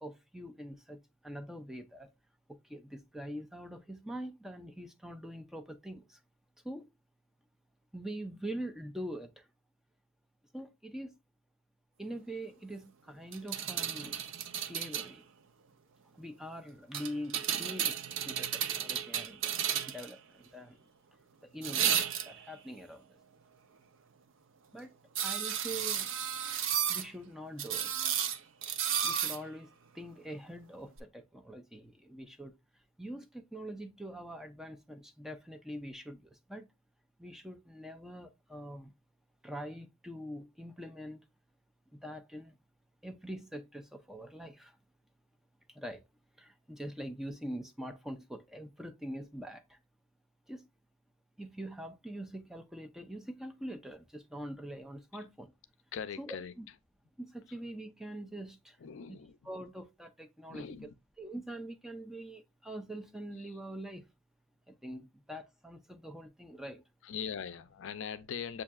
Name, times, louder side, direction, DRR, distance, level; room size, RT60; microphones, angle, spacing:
voice 1, 0.0-1.0 1.2-2.1 2.7-6.2 6.6-6.8 7.9-9.3 10.5-11.2 12.0-14.2 14.7-15.2 16.2-18.0 18.2-20.8 21.4-23.0 24.7-24.9 25.2-26.1 26.9-27.9 29.0-29.7 30.0-32.5 33.0-36.2 36.5-36.6 37.2-38.9 39.4-41.2 42.0-42.6 43.0-44.7 45.8-46.0 46.4-49.8 50.5-50.6 51.4-55.5 56.2-56.7 57.2-58.8 59.4-60.7 61.2-64.0 64.7-66.8, right 1 dB, ahead, 0.4 m, -44 dB
sound 1, 13.3-15.1 16.9-20.1 21.6-22.5 25.2-27.1 27.6-29.4 31.0-31.1, right 9 dB, 65° right, 0.4 m, -33 dB
voice 2, 55.9-56.5 58.8-59.5 60.5-60.9 63.4-63.5 67.0-68.6, left 7 dB, 65° left, 0.4 m, -41 dB
7.2 x 2.7 x 2.3 m
head